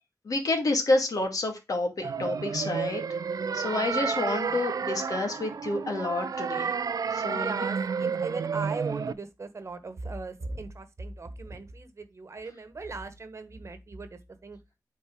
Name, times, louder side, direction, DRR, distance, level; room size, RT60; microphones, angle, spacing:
voice 1, 0.3-3.0 3.5-6.7 7.1-7.6, left 2 dB, 70° left, 2.2 m, -29 dB
sound 1, 2.0-9.1, right 6 dB, 75° right, 0.5 m, -31 dB
voice 2, 7.2-14.6, right 3 dB, 50° right, 1.2 m, -38 dB
8.4 x 4.3 x 4.6 m
wide cardioid pair, 100°, 6 cm